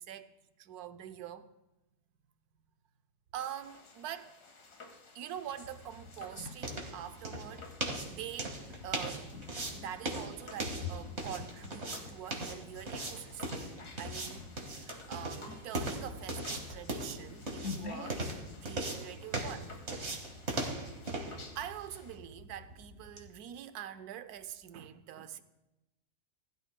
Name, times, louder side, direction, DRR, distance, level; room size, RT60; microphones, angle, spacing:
voice 1, 0.0-1.5 3.3-4.4 5.1-9.3 9.7-13.7 14.0-18.2 18.6-19.8 21.5-25.4, right 10 dB, 80° right, 1.2 m, -45 dB
sound 1, 3.4-22.2, left 3 dB, 85° left, 2.2 m, -55 dB
sound 2, 5.5-23.3, right 2 dB, 45° right, 2.0 m, -40 dB
sound 3, 5.7-7.7 8.7-12.9 13.4-13.6 14.0-14.7 15.0-15.1 15.4-18.4, left 5 dB, 70° left, 1.4 m, -47 dB
19.5 x 12.5 x 2.2 m
omnidirectional pair, 1.6 m